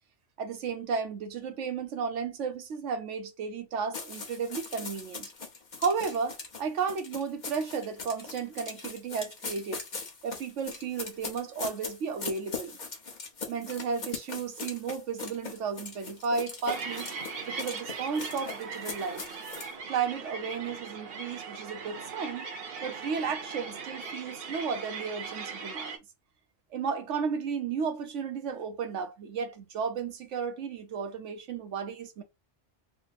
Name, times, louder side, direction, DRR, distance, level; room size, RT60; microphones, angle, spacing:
voice 1, 0.4-5.3 5.8-9.8 10.2-12.8 13.5-17.1 17.5-19.2 19.9-22.5 22.8-26.0 26.7-32.2, right 5 dB, 80° right, 1.1 m, -33 dB
sound 1, 3.9-19.7, left 4 dB, 40° left, 1.0 m, -40 dB
sound 2, 16.7-26.0, right 4 dB, 60° right, 0.9 m, -39 dB
3.3 x 2.1 x 4.0 m
omnidirectional pair, 1.2 m